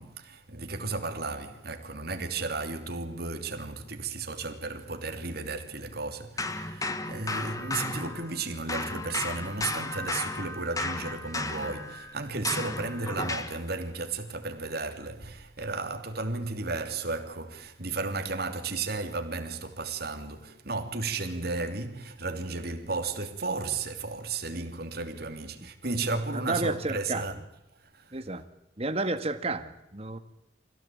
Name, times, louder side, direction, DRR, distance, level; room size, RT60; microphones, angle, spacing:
voice 1, 0.0-27.4 27.7-28.2, right 3 dB, 55° right, 3.1 m, -34 dB
sound 1, 6.4-8.4 8.7-13.6, left 2 dB, 20° left, 1.5 m, -34 dB
voice 2, 26.5-27.2 28.1-28.4 28.8-30.2, right 2 dB, 35° right, 1.7 m, -31 dB
26.0 x 16.5 x 8.6 m
head